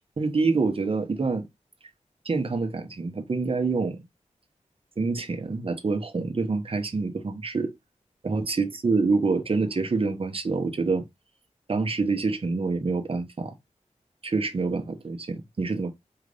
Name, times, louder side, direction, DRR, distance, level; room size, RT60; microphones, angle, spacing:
voice 1, 0.2-1.4 2.2-4.0 5.0-7.7 8.2-11.0 11.7-13.5 14.2-15.9, right 4 dB, 45° right, 0.9 m, -26 dB
4.8 x 2.5 x 3.3 m
wide cardioid pair, 105°, 13 cm